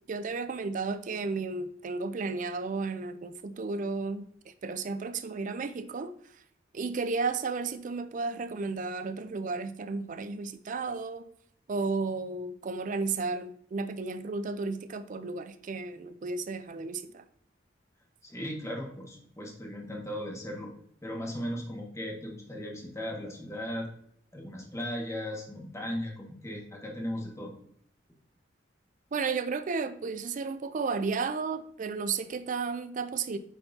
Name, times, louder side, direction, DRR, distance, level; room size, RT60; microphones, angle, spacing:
voice 1, 0.0-6.4 6.7-11.3 11.7-17.2 29.1-33.4, right 4 dB, 45° right, 11 dB, 0.4 m, -33 dB
voice 2, 18.2-20.7 21.0-23.9 24.3-27.5, equal, 15° left, -1 dB, 1.6 m, -37 dB
9.0 x 4.4 x 2.7 m, 0.67 s
head